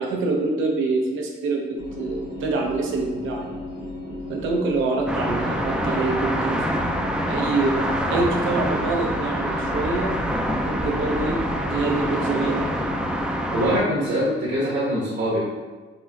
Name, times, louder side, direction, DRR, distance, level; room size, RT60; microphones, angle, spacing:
voice 1, 0.0-3.5 4.3-7.8 8.1-10.2 10.6-11.4 11.6-12.7, right 3 dB, 85° right, 0 dB, 0.7 m, -26 dB
sound 1, 1.8-13.4, left 1 dB, 90° left, 1.0 m, -35 dB
sound 2, 5.1-13.8, equal, 5° right, 0.3 m, -26 dB
voice 2, 13.5-15.4, equal, 65° right, -7 dB, 1.1 m, -23 dB
4.2 x 2.6 x 2.3 m, 1.3 s
cardioid pair, 90°, 20 cm